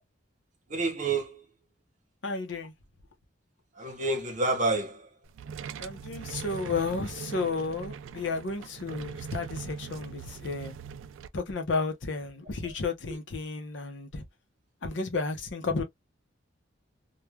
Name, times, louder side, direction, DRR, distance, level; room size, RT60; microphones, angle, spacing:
voice 1, 0.7-1.4 3.8-5.1 12.6-12.7, right 3 dB, 40° right, 0.8 m, -29 dB
voice 2, 2.2-2.7 5.8-10.7 11.3-14.2 14.8-15.8, left 4 dB, 70° left, 0.7 m, -32 dB
sound 1, 5.2-11.3, right 6 dB, 85° right, 0.3 m, -41 dB
3.1 x 2.2 x 2.2 m
head